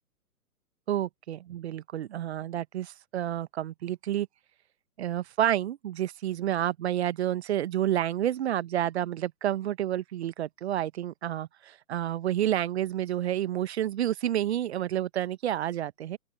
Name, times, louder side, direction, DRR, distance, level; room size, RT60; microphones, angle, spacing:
voice 1, 0.9-4.3 5.0-16.2, right 11 dB, 45° right, 1.0 m, -29 dB
open air
figure-of-eight pair, 125°, 48 cm